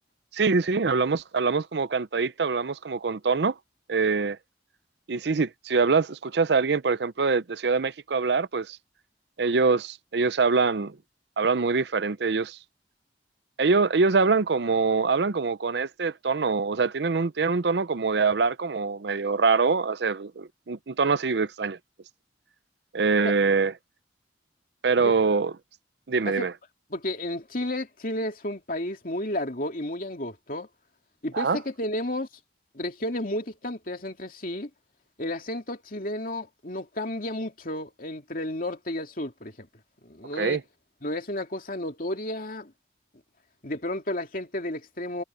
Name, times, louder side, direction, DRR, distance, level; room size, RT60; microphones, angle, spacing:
voice 1, 0.3-3.5 3.9-4.4 5.1-8.8 9.4-11.0 11.4-12.6 13.6-21.8 22.9-23.7 24.8-25.5 26.1-26.5 31.3-31.6 40.4-40.6, right 4 dB, 70° right, 0.6 m, -24 dB
voice 2, 26.9-30.7 31.2-32.3 32.7-34.7 35.2-39.7 40.0-40.6 41.0-42.7 43.6-45.2, left 1 dB, 50° left, 2.7 m, -32 dB
head